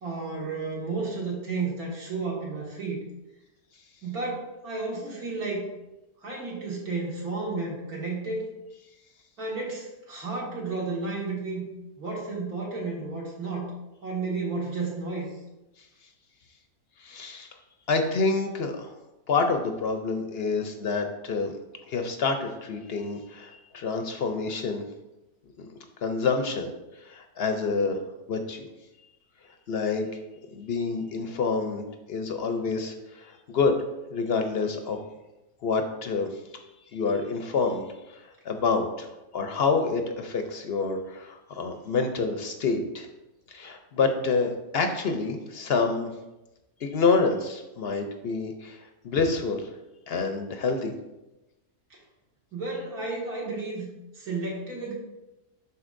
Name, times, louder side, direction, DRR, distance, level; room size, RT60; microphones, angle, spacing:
voice 1, 0.0-3.1 4.0-5.7 6.2-8.5 9.4-11.6 12.0-13.7 14.0-15.3 51.9-52.0 52.5-54.9, right 3 dB, 75° right, -4 dB, 2.3 m, -32 dB
voice 2, 17.0-17.5 17.9-18.9 19.3-21.5 21.9-24.8 25.6-25.7 26.0-26.7 27.0-28.0 28.3-28.7 29.7-30.2 30.5-33.7 34.1-35.0 35.6-36.3 36.9-37.8 38.1-39.1 39.3-43.1 43.5-46.1 46.8-49.7 50.1-50.9, left 4 dB, 60° left, 6 dB, 0.7 m, -27 dB
11.5 x 4.1 x 2.5 m, 0.99 s
omnidirectional pair, 1.6 m